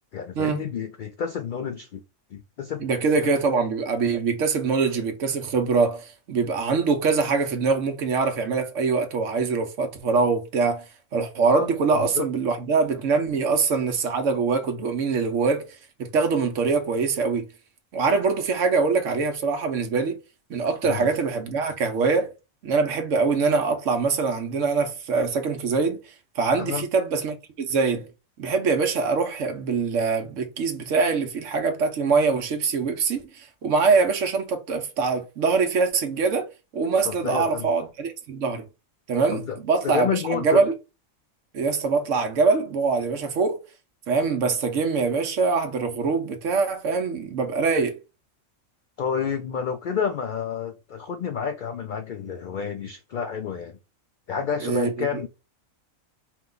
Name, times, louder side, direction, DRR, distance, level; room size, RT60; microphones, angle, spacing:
voice 1, 0.1-2.0 2.3-2.8 3.2-3.3 11.5-11.7 11.9-12.3 20.8-21.1 26.6-26.9 37.0-37.7 39.3-39.6 39.8-40.6 49.0-53.8 54.3-55.3, left 7 dB, 80° left, 0.4 m, -29 dB
voice 2, 2.8-10.8 11.1-15.7 16.0-17.5 17.9-20.2 20.5-22.3 22.6-26.0 26.4-28.1 28.4-36.5 36.7-38.6 39.1-40.7 41.5-43.6 44.1-48.0 54.6-55.2, right 4 dB, 70° right, 1.1 m, -23 dB
4.6 x 2.2 x 3.7 m
omnidirectional pair, 1.4 m